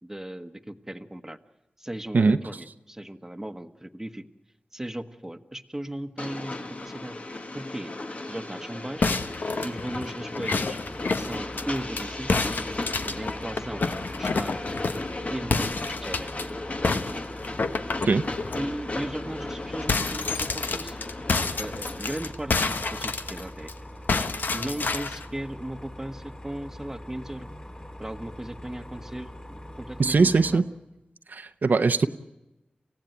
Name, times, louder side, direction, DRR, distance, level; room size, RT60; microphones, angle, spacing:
voice 1, 0.0-1.4 1.8-4.2 4.7-7.2 7.5-7.9 8.3-9.2 9.6-10.8 11.2-12.3 13.0-13.9 14.2-14.6 15.3-16.3 17.0-17.2 18.5-21.0 21.6-23.7 24.5-27.5 28.0-30.6, right 1 dB, 15° right, 7 dB, 1.2 m, -37 dB
Train, 6.2-22.3, left 2 dB, 45° left, 1.4 m, -36 dB
sound 1, 9.0-12.0 12.3-15.1 15.5-16.4 16.8-18.6 19.0-19.2 19.4-23.7 24.1-25.3, left 4 dB, 85° left, 1.2 m, -29 dB
sound 2, 10.8-30.6, left 1 dB, 30° left, 3.9 m, -43 dB
voice 2, 30.0-30.6 31.3-32.1, right 4 dB, 70° right, 8 dB, 0.8 m, -20 dB
29.0 x 16.0 x 9.1 m, 0.99 s
wide cardioid pair, 80°, 3 cm